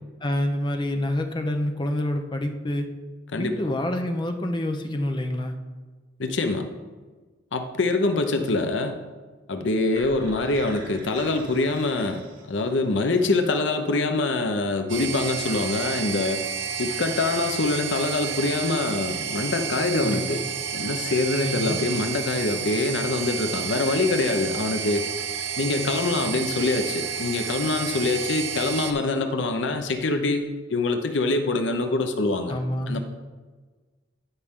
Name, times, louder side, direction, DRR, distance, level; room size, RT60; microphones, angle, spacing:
voice 1, 0.2-2.9 3.4-5.5 20.0-20.4 21.4-21.8 32.5-33.0, left 1 dB, 25° left, 6 dB, 0.7 m, -27 dB
voice 2, 6.2-6.7 7.5-9.0 9.5-16.4 16.8-20.4 20.7-25.1 25.6-32.5 32.9-33.0, left 2 dB, 75° left, 7 dB, 0.7 m, -25 dB
sound 1, 9.9-13.0, right 2 dB, 50° right, 2.5 m, -44 dB
sound 2, 14.9-28.9, right 7 dB, 85° right, 0.9 m, -31 dB
13.0 x 5.4 x 3.6 m, 1.4 s
head